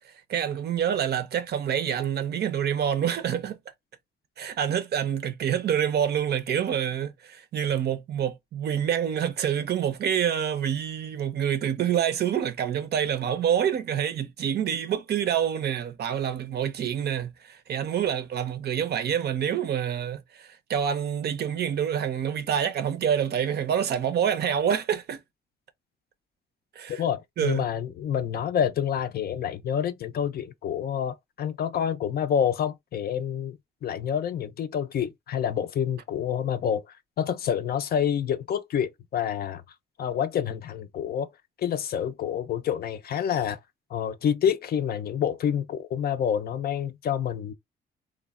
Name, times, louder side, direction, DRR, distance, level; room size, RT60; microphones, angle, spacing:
voice 1, 0.0-3.6 4.4-25.2 26.8-27.0 27.4-27.6, right 9 dB, 55° right, 0.5 m, -27 dB
voice 2, 26.9-36.8 37.2-39.6 40.0-41.3 41.6-43.6 43.9-47.5, left 9 dB, 50° left, 0.4 m, -28 dB
3.2 x 2.1 x 2.3 m
cardioid pair, 90°, 20 cm